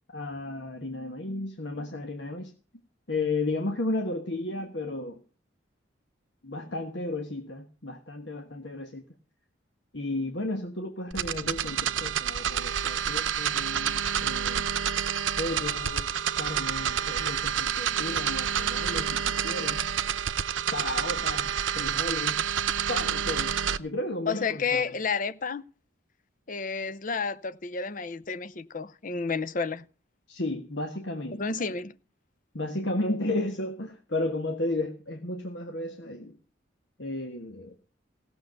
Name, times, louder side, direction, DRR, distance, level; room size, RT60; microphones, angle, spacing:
voice 1, 0.1-2.5 3.1-5.2 6.4-9.0 9.9-14.6 15.4-16.1 16.4-19.8 20.7-22.4 22.9-24.9 30.3-31.4 32.5-36.4 37.0-37.8, left 2 dB, 65° left, 1.4 m, -33 dB
sound 1, 11.1-23.8, right 8 dB, 85° right, 0.7 m, -28 dB
voice 2, 24.3-25.6 26.5-29.9 31.3-31.9, left 5 dB, 45° left, 0.6 m, -31 dB
16.5 x 6.9 x 6.5 m
head